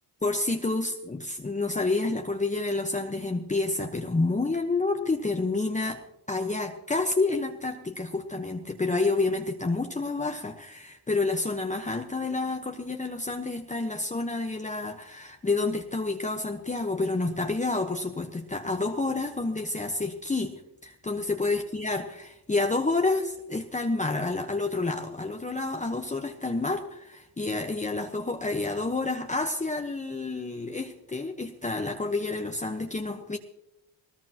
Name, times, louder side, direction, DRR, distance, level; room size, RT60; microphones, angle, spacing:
voice 1, 0.2-6.0 6.3-33.4, left 3 dB, 15° left, 3 dB, 1.2 m, -29 dB
20.0 x 18.0 x 3.0 m, 0.87 s
cardioid pair, 80°, 42 cm